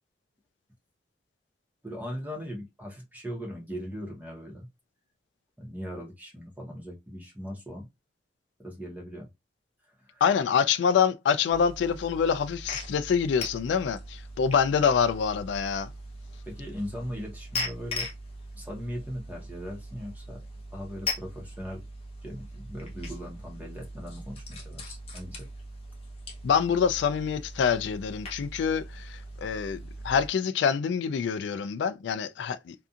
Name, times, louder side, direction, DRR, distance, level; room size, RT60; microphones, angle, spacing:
voice 1, 1.8-4.7 5.6-7.9 8.6-9.3 10.1-10.2 16.5-18.1 18.5-20.4 20.7-21.8 22.2-25.5, equal, 10° right, 0.9 m, -39 dB
voice 2, 10.2-15.9 26.4-32.7, left 7 dB, 70° left, 0.3 m, -26 dB
sound 1, 11.5-30.3, left 1 dB, 35° left, 0.8 m, -40 dB
2.7 x 2.4 x 2.4 m
head